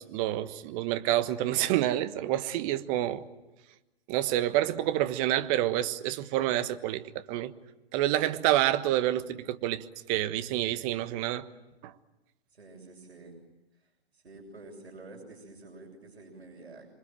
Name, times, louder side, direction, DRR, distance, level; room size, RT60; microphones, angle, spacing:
voice 1, 0.1-3.2 4.1-7.5 7.9-11.5 11.8-11.9, right 13 dB, 35° right, 1.4 m, -28 dB
voice 2, 12.5-13.4 13.8-16.9, right 2 dB, 85° right, 7.1 m, -49 dB
27.0 x 24.5 x 9.1 m
hypercardioid pair, 130°, 31 cm